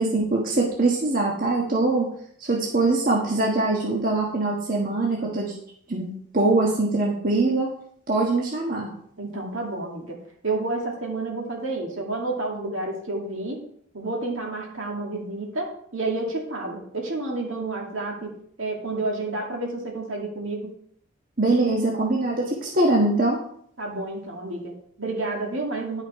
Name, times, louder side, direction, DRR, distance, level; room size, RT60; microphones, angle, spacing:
voice 1, 0.0-2.1 2.4-5.5 5.9-7.7 8.1-8.9 21.4-23.4, right 2 dB, 40° right, -3 dB, 1.4 m, -23 dB
voice 2, 9.2-10.2 10.4-13.6 13.9-18.3 18.6-20.7 23.8-26.0, right 2 dB, 65° right, 0 dB, 2.3 m, -30 dB
11.0 x 5.7 x 4.8 m, 0.65 s
head